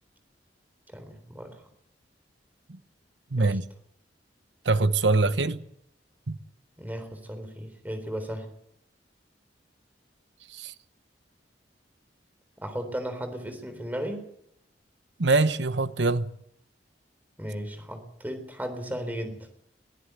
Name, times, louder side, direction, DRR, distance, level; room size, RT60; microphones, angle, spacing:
voice 1, 0.9-1.5 3.4-3.6 6.8-8.5 12.6-14.3 17.4-19.5, equal, 10° right, 3.8 m, -35 dB
voice 2, 3.3-3.7 4.6-5.6 6.3-6.4 10.5-10.7 15.2-16.3, right 3 dB, 85° right, 1.0 m, -24 dB
22.5 x 15.0 x 8.0 m
head